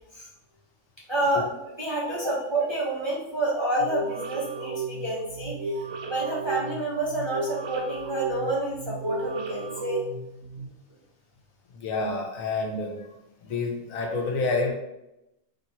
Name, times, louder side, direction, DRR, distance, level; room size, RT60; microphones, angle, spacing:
voice 1, 1.1-1.4 1.8-10.0, right 1 dB, 30° right, -6 dB, 0.5 m, -28 dB
sound 1, 3.8-10.7, right 3 dB, 80° right, 1.0 m, -34 dB
voice 2, 11.8-13.0 13.4-14.7, left 3 dB, 80° left, 1 dB, 1.2 m, -28 dB
3.0 x 2.8 x 4.2 m, 0.89 s
omnidirectional pair, 1.4 m